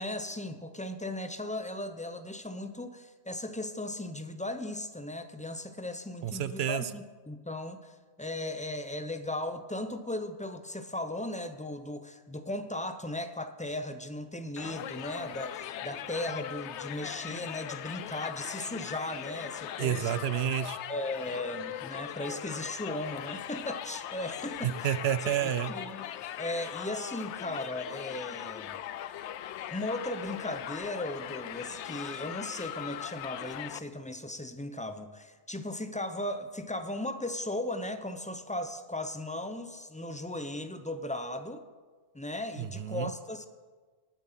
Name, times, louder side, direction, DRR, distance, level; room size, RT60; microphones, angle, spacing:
voice 1, 0.0-20.2 20.9-25.0 25.4-26.1 26.4-28.8 29.7-41.6 42.1-43.5, left 1 dB, 10° left, 9 dB, 0.6 m, -37 dB
voice 2, 6.2-6.9 19.8-20.8 24.6-25.7 42.6-43.1, right 10 dB, 70° right, 15 dB, 0.8 m, -30 dB
Crowd, 14.6-33.8, left 11 dB, 90° left, 0.9 m, -40 dB
19.0 x 7.6 x 5.8 m, 1.4 s
omnidirectional pair, 1.1 m